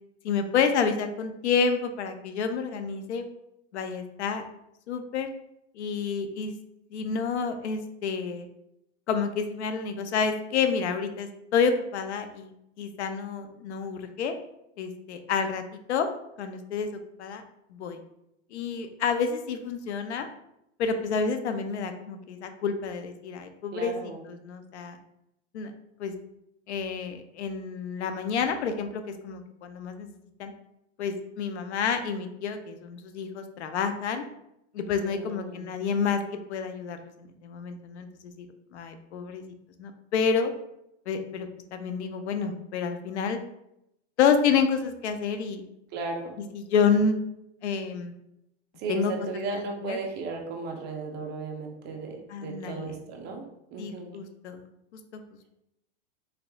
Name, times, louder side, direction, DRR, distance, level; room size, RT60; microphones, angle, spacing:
voice 1, 0.2-3.2 3.7-4.4 4.9-5.3 5.7-6.5 6.9-8.5 9.1-12.5 12.8-14.3 14.8-16.1 16.4-17.4 17.7-18.0 18.5-20.3 20.8-23.9 24.3-25.0 25.5-25.7 26.0-26.1 26.7-30.1 30.4-30.5 31.0-34.2 34.7-38.5 38.7-39.4 39.8-40.5 41.1-43.4 44.2-45.6 46.4-47.2 47.6-48.1 48.9-49.1 49.5-50.0 52.3-52.9 53.8-54.6 55.1-55.2, left 6 dB, 85° left, 8 dB, 0.6 m, -29 dB
voice 2, 23.7-24.2 35.0-35.7 45.9-46.4 48.8-54.1, right 3 dB, 30° right, 2 dB, 0.6 m, -35 dB
3.5 x 3.4 x 2.3 m, 0.82 s
hypercardioid pair, 130°, 33 cm